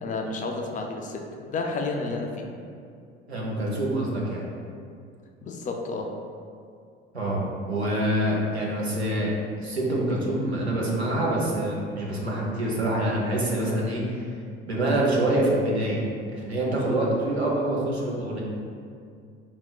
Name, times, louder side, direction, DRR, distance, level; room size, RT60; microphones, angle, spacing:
voice 1, 0.0-2.5 5.4-6.1, left 3 dB, 25° left, 2 dB, 0.4 m, -31 dB
voice 2, 3.3-4.4 7.1-9.3 9.6-14.3 14.7-16.0 16.3-18.4, right 1 dB, 90° right, -4 dB, 0.6 m, -26 dB
5.2 x 2.1 x 2.3 m, 2.4 s
figure-of-eight pair, 60°, 31 cm